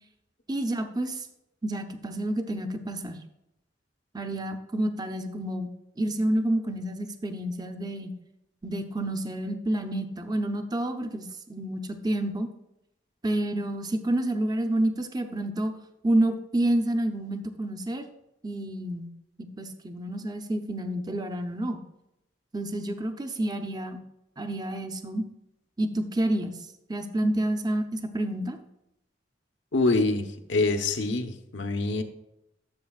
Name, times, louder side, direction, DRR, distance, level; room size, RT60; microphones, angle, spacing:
voice 1, 0.5-1.3 1.6-3.2 4.1-5.7 6.0-8.1 8.6-12.5 13.2-15.7 16.0-18.0 18.4-19.1 19.4-21.8 22.5-24.0 24.4-25.2 25.8-26.6 26.9-28.6, right 1 dB, 20° right, 7 dB, 0.7 m, -29 dB
voice 2, 29.7-32.0, left 3 dB, 85° left, 6 dB, 1.0 m, -25 dB
12.5 x 6.9 x 2.4 m, 0.85 s
head